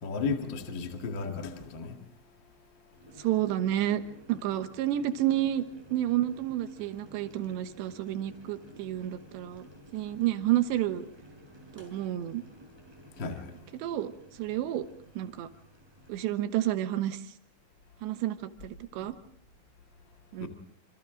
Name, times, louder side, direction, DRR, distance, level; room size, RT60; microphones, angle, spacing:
voice 1, 0.0-2.0 13.2-13.5 19.0-19.1 20.4-20.5, left 4 dB, 45° left, 1.4 m, -34 dB
Boiling, 2.9-16.4, equal, 5° right, 5.0 m, -54 dB
voice 2, 3.2-4.0 4.3-5.6 5.9-11.1 11.7-12.4 13.8-14.1 14.4-14.8 15.2-15.5 16.1-17.2 18.0-18.4 18.6-19.1 20.3-20.5, right 13 dB, 75° right, 3.2 m, -30 dB
27.5 x 27.0 x 3.8 m
omnidirectional pair, 5.4 m